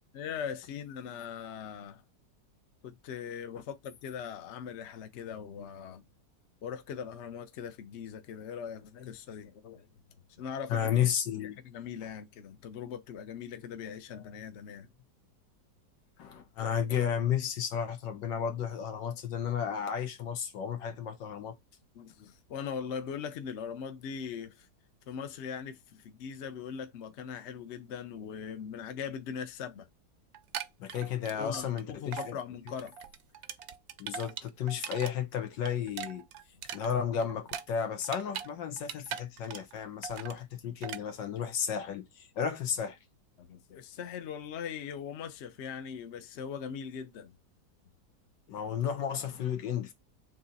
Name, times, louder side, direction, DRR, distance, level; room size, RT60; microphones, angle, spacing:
voice 1, 0.1-2.0 2.8-6.0 6.6-9.9 10.4-10.9 11.4-14.9 21.9-24.7 25.1-29.9 31.4-32.9 43.4-47.3, left 7 dB, 55° left, 0.8 m, -40 dB
voice 2, 10.7-11.6 16.2-21.6 30.8-32.4 34.0-36.2 36.7-43.0 48.5-49.9, left 8 dB, 85° left, 1.6 m, -33 dB
sound 1, 30.3-31.8 32.1-32.3 32.7-35.1 35.4-38.5 38.8-39.8 40.0-40.4 40.8-41.0, right 9 dB, 70° right, 1.0 m, -40 dB
3.9 x 3.0 x 4.0 m
omnidirectional pair, 1.9 m